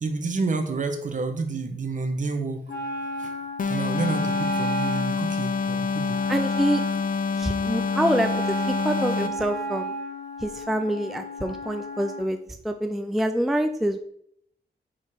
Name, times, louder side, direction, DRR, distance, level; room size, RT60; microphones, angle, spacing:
voice 1, 0.0-2.6 3.2-3.3 3.7-6.2, right 3 dB, 45° right, 6 dB, 1.0 m, -29 dB
Wind instrument woodwind instrument, 2.7-12.3, right 1 dB, 65° left, 2.1 m, -33 dB
sound 1, 3.6-9.5, left 5 dB, 50° left, 0.6 m, -27 dB
voice 2, 6.3-6.8 7.4-9.9 10.4-12.4 12.6-14.0, right 1 dB, ahead, 7 dB, 0.4 m, -26 dB
5.7 x 5.1 x 4.8 m, 0.69 s
wide cardioid pair, 150°, 18 cm